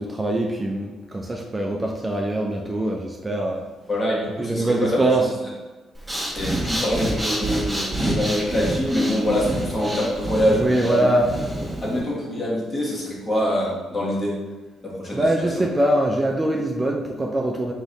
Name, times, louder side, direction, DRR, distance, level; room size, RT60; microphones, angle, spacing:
voice 1, 0.0-3.6 4.4-5.3 9.5-9.6 10.5-11.3 15.1-17.7, right 1 dB, 20° right, 0 dB, 0.5 m, -23 dB
voice 2, 3.9-5.3 6.3-11.1 11.6-14.4 14.8-15.6, equal, 30° left, -4 dB, 1.5 m, -25 dB
Breathing, 5.9-12.0, right 1 dB, 5° right, 1.1 m, -28 dB
3.9 x 3.0 x 3.9 m, 1.2 s
cardioid pair, 90°, 0 cm